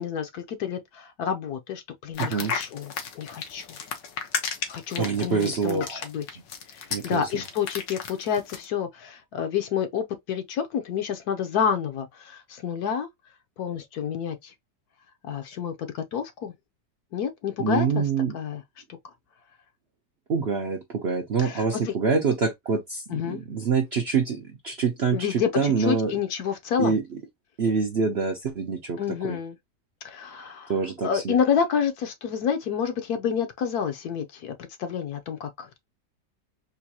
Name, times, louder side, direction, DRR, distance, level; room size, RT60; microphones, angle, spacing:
voice 1, 0.0-3.8 4.7-6.2 6.7-13.1 13.6-14.5 15.2-16.5 17.1-18.0 18.3-18.6 21.4-21.9 23.1-23.4 25.1-26.9 29.0-29.6 30.0-30.7 31.0-34.5 34.8-35.8, left 7 dB, 65° left, 1.2 m, -29 dB
sound 1, 2.1-8.6, left 6 dB, 85° left, 1.5 m, -33 dB
voice 2, 2.2-2.5 5.0-6.0 6.9-7.4 17.6-18.3 20.3-26.2 26.8-27.2 27.6-29.4 30.7-31.4, right 5 dB, 55° right, 0.7 m, -26 dB
3.9 x 2.5 x 2.8 m
omnidirectional pair, 1.9 m